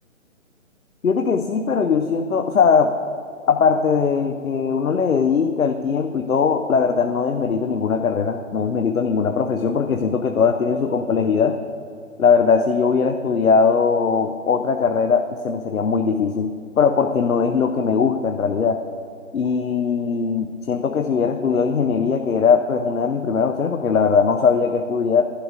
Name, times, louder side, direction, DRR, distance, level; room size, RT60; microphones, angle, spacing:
voice 1, 1.0-2.9 3.5-11.6 12.2-18.8 19.3-25.3, left 5 dB, 85° left, 6 dB, 0.6 m, -20 dB
11.5 x 10.5 x 2.5 m, 2.3 s
figure-of-eight pair, 140°, 41 cm